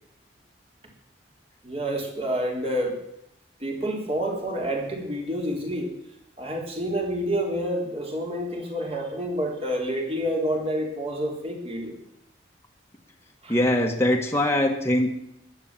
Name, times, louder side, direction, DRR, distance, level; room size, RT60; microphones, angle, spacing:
voice 1, 1.6-3.0 3.6-6.0 6.4-12.0 13.4-13.6, equal, 30° right, 1 dB, 3.5 m, -28 dB
voice 2, 13.5-15.1, left 1 dB, 15° left, 1 dB, 1.5 m, -22 dB
14.5 x 11.5 x 7.4 m, 0.78 s
head